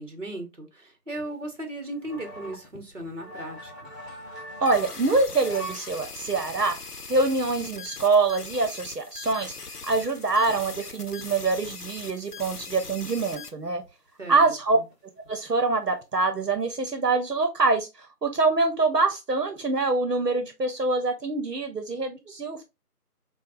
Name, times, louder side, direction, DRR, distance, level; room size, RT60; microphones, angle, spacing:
voice 1, 0.0-3.9 14.2-14.8, right 1 dB, 50° right, 1.1 m, -37 dB
sound 1, 1.2-5.9 6.2-6.4 6.8-8.2 8.6-8.7 9.2-9.3 9.5-11.1 11.5-11.6 11.8-12.4 13.0-13.1 13.8-13.9 14.2-15.3 15.6-16.0 16.3-16.7, equal, ahead, 1.2 m, -43 dB
voice 2, 4.6-6.8 7.1-9.5 9.9-13.8 14.3-14.8 15.3-22.6, right 3 dB, 80° right, 1.0 m, -25 dB
sound 2, 4.7-13.5, left 4 dB, 75° left, 0.7 m, -41 dB
6.0 x 2.3 x 2.5 m
figure-of-eight pair, 175°, 47 cm